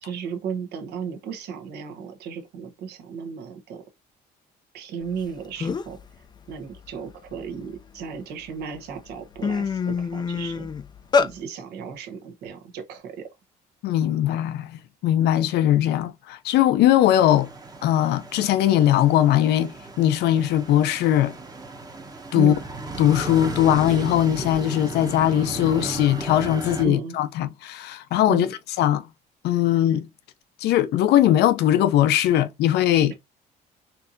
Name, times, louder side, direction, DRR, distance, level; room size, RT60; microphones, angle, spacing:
voice 1, 0.0-3.8 4.7-6.0 6.5-10.7 11.1-13.3 22.3-22.6 26.8-27.2 28.3-28.5, right 6 dB, 75° right, 1.0 m, -34 dB
sound 1, 5.2-5.3 5.6-6.0 6.5-8.0 8.6-8.8 9.1-11.3, left 5 dB, 25° left, 0.4 m, -25 dB
voice 2, 13.8-17.5 17.8-21.4 22.3-22.5 23.0-28.5 28.8-29.1 29.4-30.1 30.6-33.1, left 12 dB, 75° left, 0.5 m, -20 dB
sound 2, 17.0-26.9, right 2 dB, 20° right, 0.9 m, -35 dB
4.3 x 2.8 x 2.6 m
cardioid pair, 110°, 17 cm